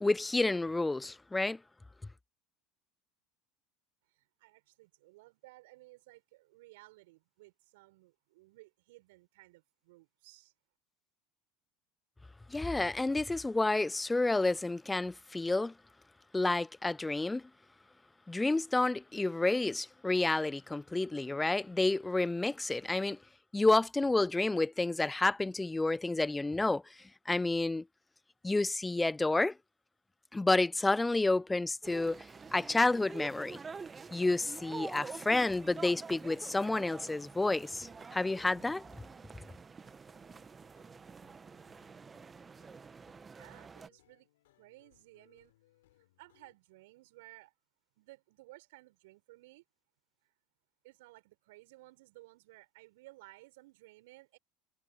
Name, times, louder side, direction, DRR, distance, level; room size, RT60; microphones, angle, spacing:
voice 1, 0.0-1.6 12.5-15.7 16.3-17.4 18.3-23.2 23.5-26.8 27.3-27.8 28.4-29.6 30.3-32.2 32.5-33.6 34.1-38.8, left 2 dB, 10° left, 0.4 m, -30 dB
voice 2, 4.1-10.5 43.3-44.3 44.6-45.5 46.2-47.5 48.0-49.6 50.8-54.4, right 21 dB, 70° right, 6.2 m, -57 dB
sound 1, 31.8-43.9, right 5 dB, 25° right, 1.7 m, -48 dB
sound 2, 32.2-39.6 39.8-43.3 43.5-46.6, left 16 dB, 75° left, 4.3 m, -71 dB
hypercardioid pair, 75°, 0 cm